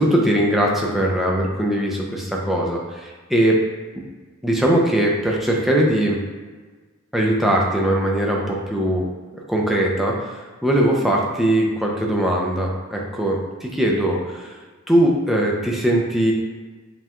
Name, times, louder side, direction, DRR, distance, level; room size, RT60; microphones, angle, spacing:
voice 1, 0.0-3.6 4.4-6.2 7.1-9.1 9.3-14.5 14.9-16.3, right 1 dB, ahead, -2 dB, 0.5 m, -20 dB
5.4 x 3.0 x 2.3 m, 1.4 s
head